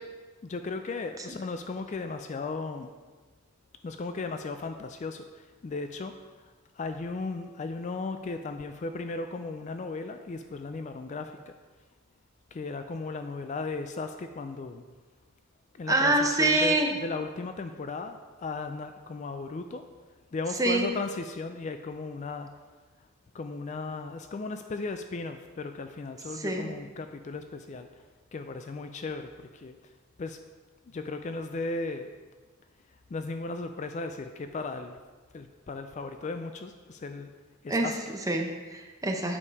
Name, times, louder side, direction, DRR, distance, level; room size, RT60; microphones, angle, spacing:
voice 1, 0.4-2.9 3.8-11.5 12.5-14.8 15.7-19.8 20.3-22.5 23.3-27.9 28.3-29.8 30.2-30.4 30.9-32.1 33.1-35.0 35.3-37.3 37.6-38.2, left 3 dB, 35° left, 7 dB, 0.3 m, -36 dB
voice 2, 15.9-16.9 20.6-20.9 26.3-26.7 37.7-37.9 38.3-39.4, right 2 dB, 15° right, 3 dB, 0.8 m, -25 dB
8.3 x 5.3 x 4.7 m, 1.3 s
head